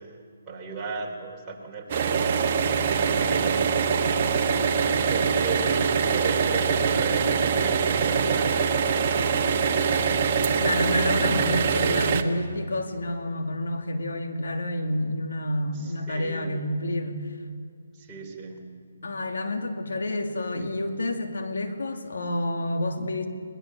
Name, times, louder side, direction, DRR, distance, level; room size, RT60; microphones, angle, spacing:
voice 1, 0.0-2.2 2.7-4.2 4.8-10.3 15.7-16.6 17.9-18.7, right 4 dB, 15° right, -3 dB, 4.3 m, -36 dB
sound 1, 1.9-12.2, right 6 dB, 40° right, 1.5 m, -23 dB
voice 2, 10.6-17.3 19.0-23.3, left 1 dB, 75° left, 4 dB, 2.6 m, -29 dB
21.5 x 20.0 x 7.1 m, 2.1 s
hypercardioid pair, 155°, 0 cm